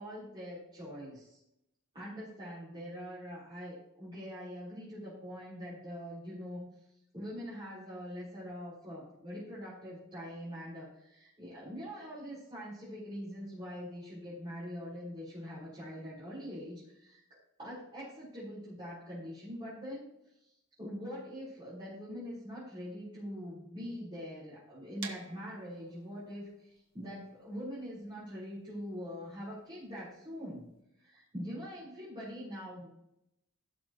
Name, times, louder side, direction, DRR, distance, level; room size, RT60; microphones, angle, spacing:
voice 1, 0.0-1.4 1.9-6.7 7.1-17.2 17.6-20.1 20.4-30.7 31.0-32.9, equal, 25° right, -10 dB, 4.1 m, -43 dB
sound 1, 25.0-30.8, right 5 dB, 70° right, 1.4 m, -51 dB
16.5 x 6.2 x 3.0 m, 0.82 s
head